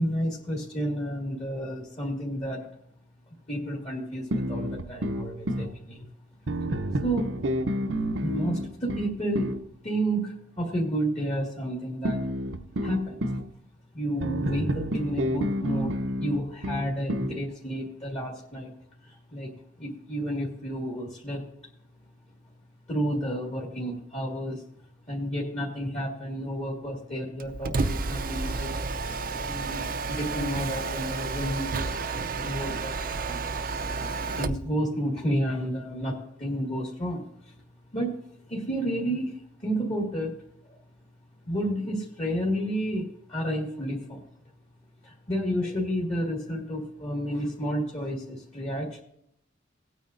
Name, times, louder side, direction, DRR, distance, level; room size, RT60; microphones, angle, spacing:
voice 1, 0.0-2.7 3.5-6.1 7.0-7.3 8.2-9.5 9.8-12.3 12.8-13.2 13.9-18.7 19.0-19.5 19.8-21.4 22.9-24.6 25.1-28.8 29.5-31.9 32.4-33.7 34.4-37.5 37.9-38.1 38.5-40.4 40.6-40.8 41.5-44.2 45.0-49.0, equal, 35° left, -3 dB, 2.1 m, -31 dB
sound 1, 4.3-5.7 6.5-9.6 12.0-13.5 14.2-17.4, equal, 90° right, 0.8 m, -29 dB
Mechanisms, 27.4-34.7, right 3 dB, 45° right, 0.5 m, -31 dB
18.5 x 9.1 x 2.6 m, 0.72 s
head